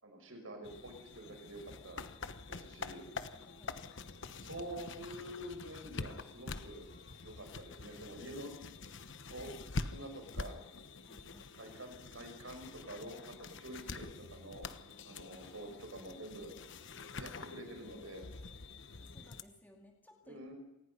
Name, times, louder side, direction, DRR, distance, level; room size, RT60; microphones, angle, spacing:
voice 1, 0.0-2.0 2.5-3.0 4.4-6.9 7.2-8.5 9.3-9.5 9.8-10.6 11.5-14.6 15.0-16.5 17.1-18.3 20.2-20.5, right 1 dB, 70° right, 4 dB, 5.9 m, -47 dB
sound 1, 0.6-19.4, left 3 dB, 60° left, 1.1 m, -46 dB
voice 2, 3.3-3.8 11.0-11.5 19.0-20.4, left 1 dB, 10° left, 1 dB, 2.4 m, -61 dB
25.5 x 19.0 x 5.6 m, 0.95 s
head